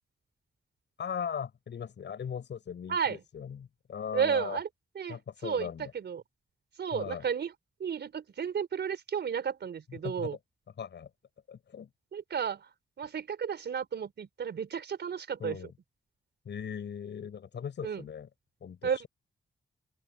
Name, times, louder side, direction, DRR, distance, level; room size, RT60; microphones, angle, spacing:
voice 1, 1.0-4.6 5.1-5.9 6.9-7.3 9.9-10.4 10.8-11.1 11.5-11.9 15.4-15.7 16.4-18.3 18.6-19.1, left 7 dB, 75° left, 7.7 m, -39 dB
voice 2, 4.1-4.7 4.9-5.7 5.9-6.2 6.8-7.5 7.8-10.4 12.1-12.7 13.0-15.6 17.8-18.0 18.8-19.0, right 7 dB, 70° right, 4.7 m, -32 dB
open air
wide cardioid pair, 135°, 19 cm